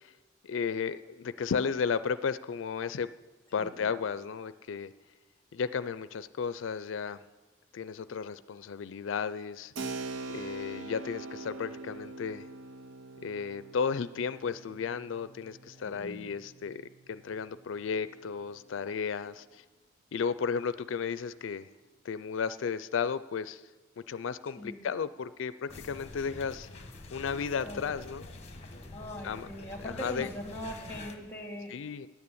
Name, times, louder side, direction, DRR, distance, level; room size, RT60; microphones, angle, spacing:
voice 1, 0.4-3.1 3.5-4.9 5.5-7.2 7.7-9.7 10.3-12.5 13.2-16.8 17.1-19.6 20.1-21.7 22.0-23.6 24.1-26.7 27.1-28.3 29.2-29.5 29.8-30.3 31.7-32.1, left 6 dB, 90° left, 14 dB, 0.4 m, -34 dB
voice 2, 3.6-3.9 15.8-16.3 24.6-24.9 27.6-27.9 28.9-31.7, equal, 10° left, 2 dB, 2.1 m, -41 dB
Keyboard (musical), 9.8-18.1, right 3 dB, 85° right, 0.7 m, -44 dB
sound 1, 25.7-31.2, left 2 dB, 35° left, 1.1 m, -46 dB
10.5 x 9.5 x 8.6 m, 1.3 s
head